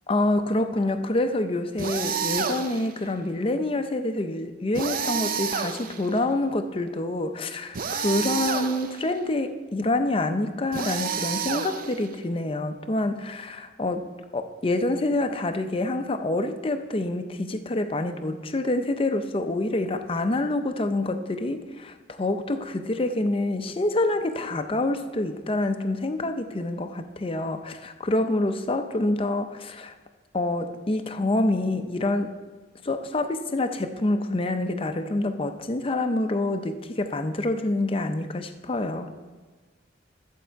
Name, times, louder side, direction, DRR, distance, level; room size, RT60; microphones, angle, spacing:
voice 1, 0.1-14.0 14.3-29.9 30.3-32.4 32.8-39.1, left 2 dB, 30° left, 7 dB, 0.5 m, -27 dB
sound 1, 1.8-2.9 4.7-6.2 7.7-9.0 10.7-12.1, right 6 dB, 50° right, 0.5 m, -29 dB
11.0 x 7.5 x 4.6 m, 1.3 s
head